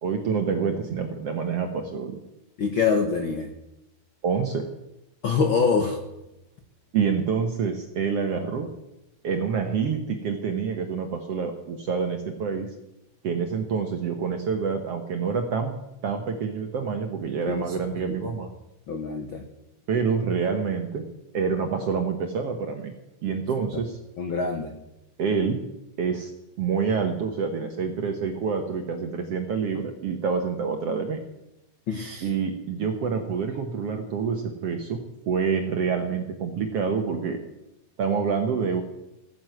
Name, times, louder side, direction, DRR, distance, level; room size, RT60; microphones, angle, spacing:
voice 1, 0.0-2.2 4.2-4.7 6.9-8.7 9.2-12.7 13.2-15.7 16.0-18.5 19.9-21.0 21.3-22.9 23.2-24.0 25.2-25.6 26.0-26.3 26.6-31.2 32.2-35.0 35.3-37.4 38.0-38.8, right 6 dB, 65° right, 5 dB, 1.5 m, -27 dB
voice 2, 2.6-3.5 5.2-6.0 17.5-17.6 18.1-18.3 18.9-19.4 23.7-23.8 24.2-24.7 31.9-32.3, left 5 dB, 85° left, 5 dB, 1.1 m, -25 dB
16.0 x 9.6 x 7.7 m, 0.89 s
omnidirectional pair, 4.3 m